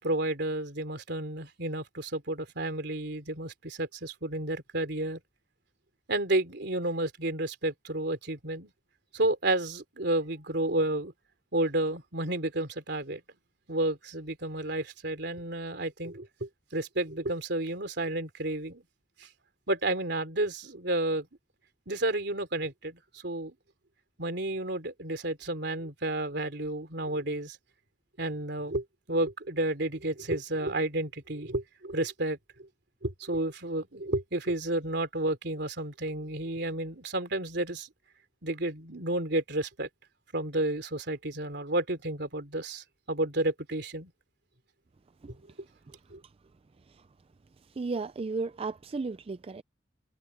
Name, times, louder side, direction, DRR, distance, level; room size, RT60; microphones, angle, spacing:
voice 1, 0.0-5.2 6.1-8.7 9.1-11.1 11.5-13.2 13.7-18.8 19.2-19.3 19.7-21.3 21.9-23.5 24.2-27.6 28.2-32.4 33.0-37.9 38.4-39.9 40.3-44.1 46.1-46.2, right 1 dB, 65° right, 3.5 m, -31 dB
voice 2, 47.8-49.6, right 3 dB, 35° right, 0.4 m, -34 dB
head